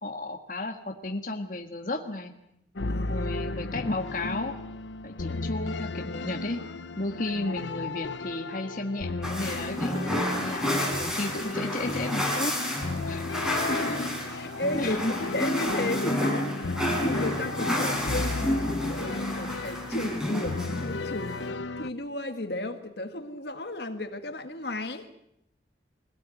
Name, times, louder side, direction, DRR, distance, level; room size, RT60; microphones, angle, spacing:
voice 1, 0.0-2.3 3.1-4.6 5.0-6.6 7.0-9.9 10.4-12.5 13.1-13.3 14.8-15.1, left 2 dB, 45° left, 3 dB, 1.7 m, -33 dB
sound 1, 2.8-21.9, left 3 dB, 85° left, 0.9 m, -35 dB
voice 2, 2.9-3.3 13.7-25.1, left 1 dB, 65° left, 7 dB, 1.9 m, -34 dB
sound 2, 9.2-21.5, left 1 dB, 5° right, 4.4 m, -30 dB
22.5 x 17.0 x 9.3 m, 0.78 s
head